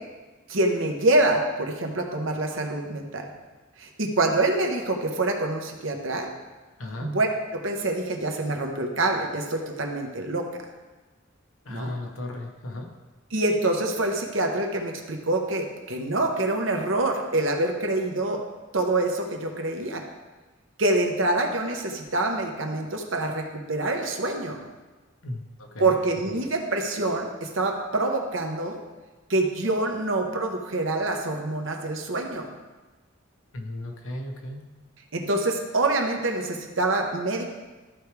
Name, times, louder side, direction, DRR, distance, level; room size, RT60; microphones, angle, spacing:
voice 1, 0.5-3.3 3.8-6.3 7.0-7.3 7.5-10.5 11.7-11.9 13.3-18.4 18.7-20.0 20.8-24.6 25.8-28.8 29.3-32.5 35.1-37.5, right 2 dB, 70° right, 2 dB, 1.1 m, -26 dB
voice 2, 6.8-7.1 11.6-12.9 25.2-26.0 33.5-34.6, left 1 dB, 85° left, 1 dB, 1.2 m, -35 dB
13.5 x 4.7 x 3.4 m, 1.2 s
head